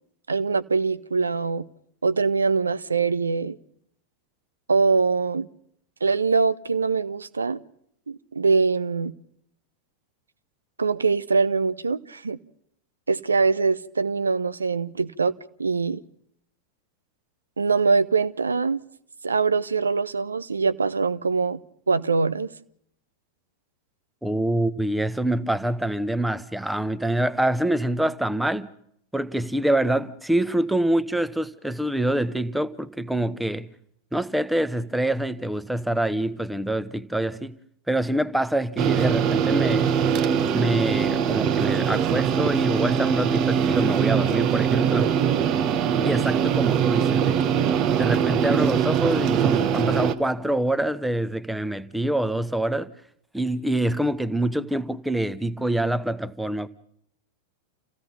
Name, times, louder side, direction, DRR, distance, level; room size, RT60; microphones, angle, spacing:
voice 1, 0.3-1.6 2.0-3.6 4.7-5.5 6.0-7.6 8.1-9.1 10.8-12.4 13.1-15.3 15.6-16.0 17.6-18.8 19.2-21.6 21.9-22.5, right 4 dB, 75° right, 0.8 m, -23 dB
voice 2, 24.2-28.7 29.1-33.7 34.1-37.6 37.9-39.9 40.5-45.2 46.0-47.4 48.0-52.9 53.3-56.7, right 1 dB, 5° right, 1.0 m, -25 dB
sound 1, 38.8-50.1, right 8 dB, 35° right, 1.2 m, -22 dB
29.0 x 16.5 x 5.6 m
figure-of-eight pair, 90°, 0 cm